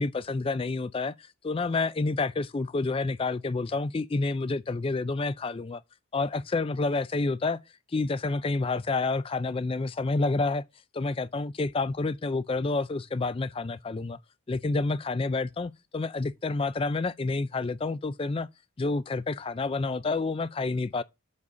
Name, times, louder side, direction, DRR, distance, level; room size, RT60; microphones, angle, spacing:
voice 1, 0.0-5.8 6.1-7.6 7.9-10.6 10.9-14.2 14.5-18.5 18.8-21.0, left 3 dB, 25° left, 0.3 m, -29 dB
7.5 x 4.1 x 4.7 m
head